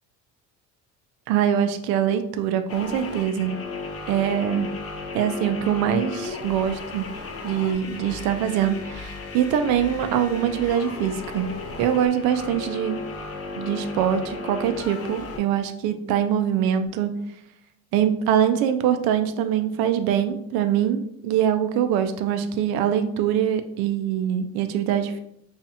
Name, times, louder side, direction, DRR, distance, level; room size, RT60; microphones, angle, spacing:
voice 1, 1.3-3.6 4.1-4.7 5.1-7.1 7.4-11.5 11.8-13.0 13.5-17.1 17.9-25.2, right 9 dB, 85° right, 8 dB, 0.5 m, -23 dB
sound 1, 2.7-15.4, left 3 dB, 40° left, 0.7 m, -35 dB
5.4 x 2.4 x 2.7 m, 0.77 s
cardioid pair, 130°, 35 cm